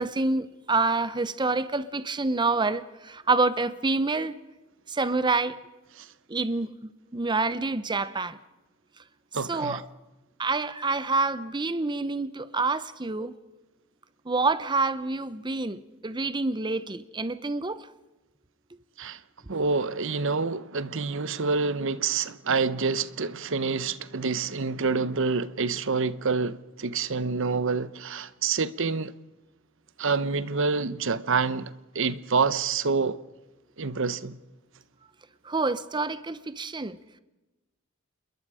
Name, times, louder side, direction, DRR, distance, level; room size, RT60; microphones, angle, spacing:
voice 1, 0.0-4.4 4.9-5.6 6.3-8.4 9.4-9.9 10.4-13.4 14.3-17.9 35.4-37.0, right 3 dB, 20° right, 0.7 m, -27 dB
voice 2, 9.3-9.8 19.0-19.2 19.5-29.1 30.0-33.2 33.8-34.4, right 4 dB, 65° right, 0.9 m, -27 dB
28.0 x 22.0 x 5.0 m
head